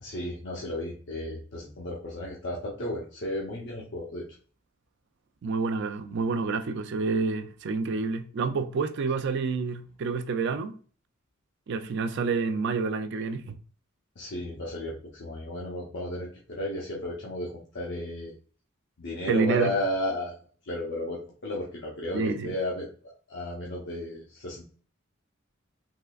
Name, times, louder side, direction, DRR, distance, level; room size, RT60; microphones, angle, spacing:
voice 1, 0.0-4.2 14.2-18.3 19.0-20.4 20.7-22.9 23.3-24.7, left 1 dB, 60° left, 0.7 m, -33 dB
voice 2, 5.4-10.8 11.7-13.6 19.3-19.7 22.1-22.5, right 4 dB, 60° right, 0.4 m, -28 dB
3.7 x 3.1 x 2.3 m
head